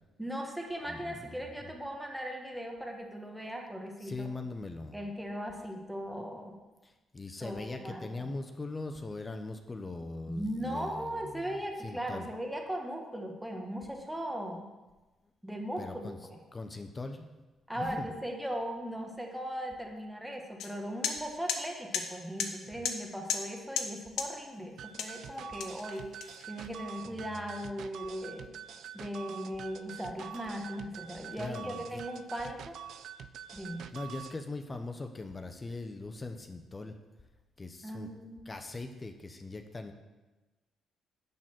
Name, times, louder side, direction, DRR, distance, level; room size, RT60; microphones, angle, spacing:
voice 1, 0.2-4.3 4.9-6.6 7.4-8.3 10.3-14.7 15.4-16.1 17.7-28.5 28.9-32.8 33.5-33.9 37.8-38.4, equal, 5° right, 1 dB, 1.4 m, -38 dB
voice 2, 0.9-1.7 4.0-5.0 6.8-12.3 15.8-17.3 17.8-18.1 27.1-27.2 31.3-32.0 33.9-37.0 37.6-38.1 38.5-39.9, left 3 dB, 25° left, 6 dB, 0.8 m, -41 dB
sound 1, 20.6-20.7 21.0-21.2 21.5-21.6 21.9-22.1 22.4-22.5 22.8-23.0 23.3-23.5 23.8-23.9 24.2-24.3 25.0-25.2 25.6-26.6, left 7 dB, 85° left, 0.9 m, -33 dB
sound 2, 24.8-34.4, right 9 dB, 75° right, 0.4 m, -46 dB
11.0 x 4.1 x 7.6 m, 1.1 s
cardioid pair, 90°, 0 cm